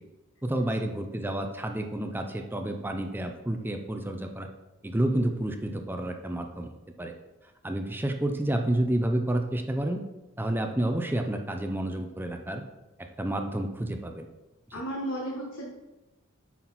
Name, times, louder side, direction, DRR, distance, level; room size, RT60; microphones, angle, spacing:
voice 1, 0.4-4.5 4.8-6.7 7.0-7.1 7.6-10.0 10.4-12.6 13.2-14.2, right 1 dB, 10° right, 5 dB, 0.5 m, -29 dB
voice 2, 14.7-15.7, right 1 dB, 70° left, -3 dB, 1.4 m, -33 dB
8.7 x 5.9 x 4.1 m, 1.0 s
head